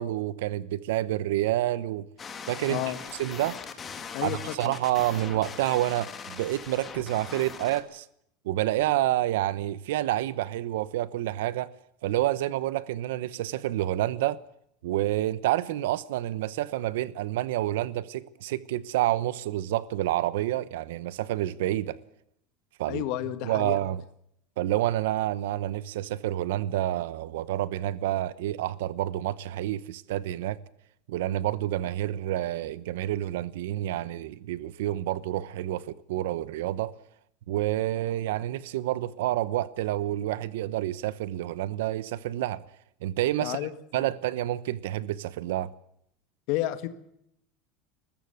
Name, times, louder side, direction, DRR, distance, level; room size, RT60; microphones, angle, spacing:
voice 1, 0.0-2.1 2.5-2.9 3.2-3.6 4.2-8.0 8.4-11.7 12.0-14.4 14.8-22.0 22.8-23.0 23.4-24.0 24.6-30.6 31.1-36.9 37.5-42.7 43.0-43.7 43.9-45.7, right 14 dB, 85° right, 0.9 m, -28 dB
sound 1, 2.2-7.8, left 6 dB, 20° left, 1.9 m, -41 dB
voice 2, 4.1-4.7 22.9-23.8 43.4-43.7 44.0-44.1 46.5-46.9, left 14 dB, 55° left, 1.7 m, -31 dB
20.5 x 15.0 x 9.3 m
supercardioid pair, 165°, 0 cm